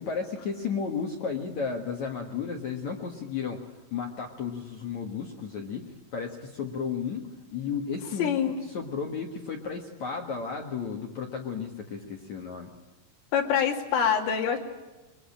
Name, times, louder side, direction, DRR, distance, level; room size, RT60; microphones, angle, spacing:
voice 1, 0.0-12.7, left 6 dB, 60° left, 2 dB, 2.0 m, -34 dB
voice 2, 8.2-8.6 13.3-14.6, left 8 dB, 85° left, 1 dB, 5.1 m, -25 dB
24.0 x 22.0 x 8.8 m, 1.1 s
omnidirectional pair, 5.7 m